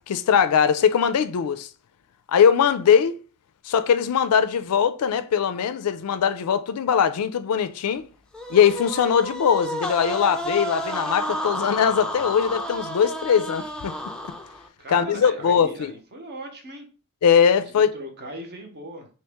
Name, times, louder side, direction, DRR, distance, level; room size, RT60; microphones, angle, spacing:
voice 1, 0.1-1.7 2.3-3.2 3.6-8.1 8.5-14.0 14.9-15.9 17.2-17.9, left 7 dB, 90° left, 0.4 m, -21 dB
sound 1, 8.3-14.7, equal, 5° left, 0.4 m, -31 dB
voice 2, 14.8-16.9 17.8-19.1, right 1 dB, 50° right, 0.8 m, -38 dB
2.9 x 2.9 x 3.4 m
head